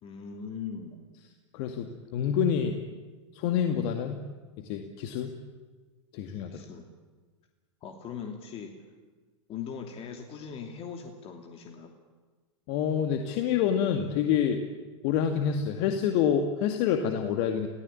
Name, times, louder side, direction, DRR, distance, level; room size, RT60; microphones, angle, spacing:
voice 1, 0.0-1.0 6.5-6.8 7.8-8.7 9.5-11.9, left 6 dB, 35° left, 3 dB, 3.0 m, -40 dB
voice 2, 1.5-2.8 3.3-4.3 4.6-5.4 6.1-6.6 12.7-14.6 15.0-17.7, left 8 dB, 55° left, 5 dB, 2.2 m, -27 dB
30.0 x 18.0 x 8.8 m, 1.4 s
hypercardioid pair, 95°, 16 cm